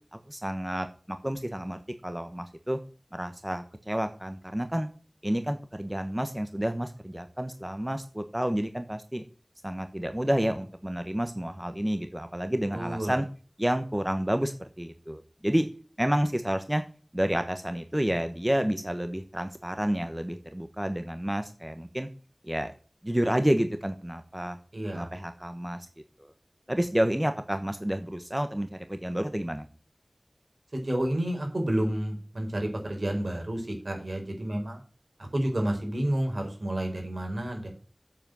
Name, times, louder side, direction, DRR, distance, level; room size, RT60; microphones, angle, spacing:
voice 1, 0.1-2.8 3.1-4.9 5.2-9.2 9.6-13.3 13.6-15.7 16.0-16.8 17.1-22.1 22.4-22.7 23.0-24.6 24.9-25.9 26.2-26.3 26.7-29.7, equal, 20° right, 8 dB, 1.2 m, -30 dB
voice 2, 12.7-13.2 24.7-25.1 30.7-34.8 35.3-37.7, right 1 dB, 75° right, 2 dB, 4.5 m, -30 dB
7.9 x 7.5 x 7.9 m, 0.38 s
wide cardioid pair, 45°, 0 cm